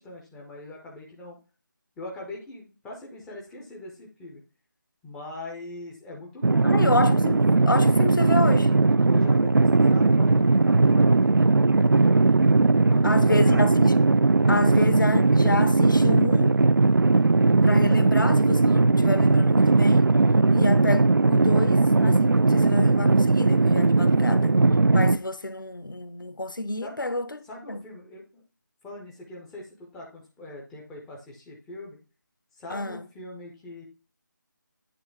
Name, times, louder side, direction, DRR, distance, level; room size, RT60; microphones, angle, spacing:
voice 1, 0.0-1.4 2.0-4.4 5.0-6.9 9.1-11.2 12.9-13.7 23.9-24.3 26.8-26.9 27.5-28.4 28.8-32.0 32.6-33.8, left 1 dB, ahead, 0.3 m, -41 dB
sound 1, 6.4-25.2, right 3 dB, 85° right, 0.4 m, -19 dB
voice 2, 6.6-8.7 13.0-14.0 14.5-16.6 17.6-20.1 20.5-24.5 24.9-27.3 27.7-27.8 32.7-33.0, left 2 dB, 75° left, 0.9 m, -29 dB
8.5 x 2.9 x 4.6 m
figure-of-eight pair, 155°, 11 cm